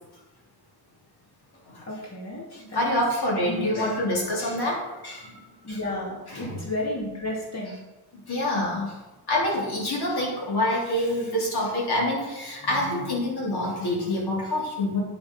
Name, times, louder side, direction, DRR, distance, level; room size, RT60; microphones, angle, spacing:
voice 1, 1.8-2.8 3.5-4.3 5.6-7.8, left 1 dB, 40° left, -3 dB, 2.9 m, -33 dB
voice 2, 2.5-5.4 5.7-5.8 6.3-6.6 8.3-8.9 9.3-15.0, left 1 dB, 75° left, -2 dB, 3.4 m, -26 dB
9.5 x 6.9 x 5.3 m, 1.1 s
wide cardioid pair, 135°, 39 cm